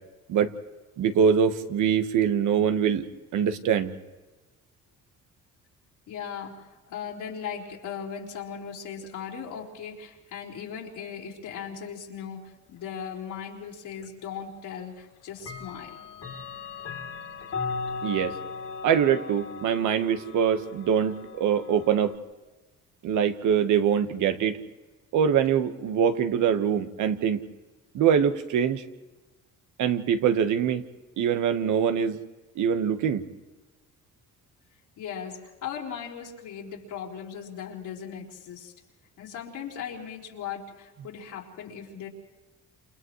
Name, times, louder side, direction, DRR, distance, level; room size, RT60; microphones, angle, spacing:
voice 1, 1.0-3.0 3.3-3.9 18.0-18.4 18.8-22.2 23.0-24.6 25.1-27.4 27.9-28.8 29.8-30.8 31.2-32.2 32.5-33.2, right 8 dB, 80° right, 9 dB, 1.4 m, -23 dB
voice 2, 6.1-16.0 35.0-38.7 39.2-42.1, left 7 dB, 85° left, -2 dB, 4.3 m, -38 dB
Clock, 14.0-14.1 15.4-22.2, left 4 dB, 65° left, 2.9 m, -37 dB
29.0 x 29.0 x 3.2 m, 1.2 s
cardioid pair, 90°, 30 cm